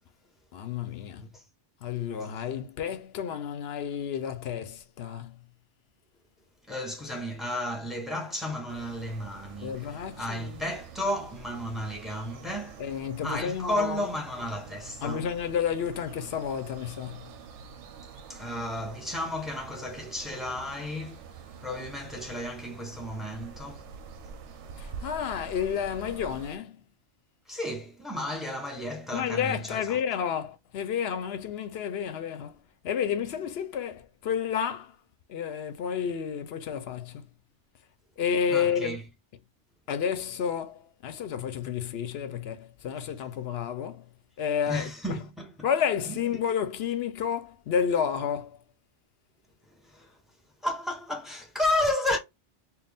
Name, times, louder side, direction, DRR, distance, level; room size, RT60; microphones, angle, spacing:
voice 1, 0.5-1.3 1.8-5.4 9.6-10.6 12.8-14.0 15.0-17.3 24.8-26.8 29.1-32.6 32.8-35.0 35.3-37.2 38.2-39.0 39.9-44.1 44.4-44.9 45.6-48.6, left 8 dB, 65° left, 0.8 m, -31 dB
voice 2, 6.7-9.9 10.2-12.8 13.2-15.3 18.3-21.2 21.6-23.9 27.5-30.0 38.5-39.0 44.7-45.6 46.1-46.2 49.8-50.1 50.6-52.2, left 1 dB, ahead, 0.9 m, -33 dB
sound 1, 8.7-26.6, right 5 dB, 85° right, 0.9 m, -46 dB
4.1 x 2.3 x 3.4 m
omnidirectional pair, 1.2 m